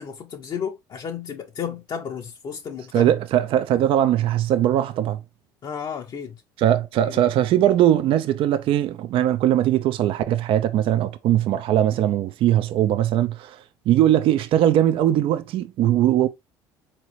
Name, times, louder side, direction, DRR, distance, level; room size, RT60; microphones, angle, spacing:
voice 1, 0.0-3.1 5.6-6.4 7.1-7.2, left 7 dB, 45° left, 0.7 m, -33 dB
voice 2, 2.9-5.2 6.6-13.6 13.9-16.3, right 11 dB, 55° right, 0.5 m, -20 dB
3.9 x 2.9 x 3.0 m
hypercardioid pair, 75°, 10 cm